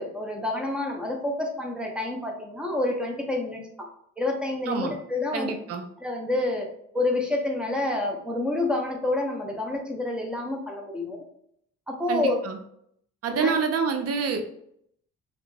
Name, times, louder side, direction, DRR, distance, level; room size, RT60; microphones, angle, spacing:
voice 1, 0.0-3.9 4.2-5.5 6.0-6.7 6.9-11.2 11.9-12.4 13.3-13.5, left 2 dB, 5° right, 1 dB, 0.7 m, -28 dB
voice 2, 5.3-5.8 12.1-12.6 13.2-14.5, right 5 dB, 50° right, 6 dB, 0.6 m, -27 dB
3.2 x 2.5 x 3.1 m, 0.71 s
cardioid pair, 90°, 30 cm